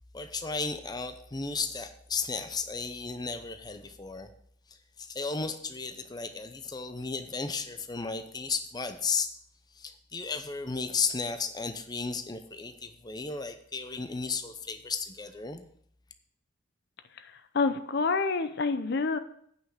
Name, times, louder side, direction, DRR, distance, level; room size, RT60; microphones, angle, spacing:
voice 1, 0.1-4.3 4.7-9.3 9.7-15.7, left 4 dB, 20° left, 8 dB, 0.7 m, -34 dB
voice 2, 17.2-19.2, left 4 dB, 55° left, 10 dB, 0.6 m, -28 dB
9.3 x 5.7 x 6.5 m, 0.67 s
head